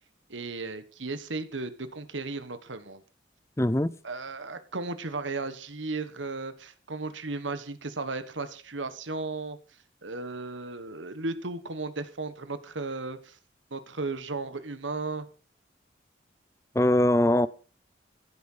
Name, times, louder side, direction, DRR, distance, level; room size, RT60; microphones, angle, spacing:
voice 1, 0.3-3.0 4.0-9.6 10.0-13.4 13.7-15.3, right 3 dB, 85° right, 1.4 m, -35 dB
voice 2, 3.6-3.9 16.7-17.5, left 1 dB, 15° left, 0.6 m, -22 dB
14.5 x 8.7 x 5.6 m
head